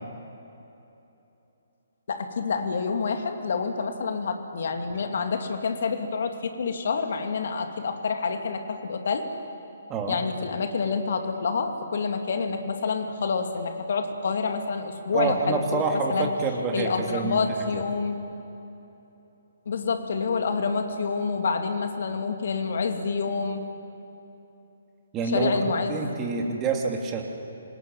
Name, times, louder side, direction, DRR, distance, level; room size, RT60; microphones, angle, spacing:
voice 1, 2.1-9.3 10.1-16.3 16.7-18.2 19.7-23.7 25.3-26.1, left 5 dB, 55° left, 5 dB, 2.7 m, -28 dB
voice 2, 15.1-17.4 17.7-17.8 25.1-25.6 25.9-27.2, right 4 dB, 20° right, 1 dB, 3.0 m, -27 dB
27.0 x 18.5 x 9.2 m, 3.0 s
figure-of-eight pair, 135°, 0 cm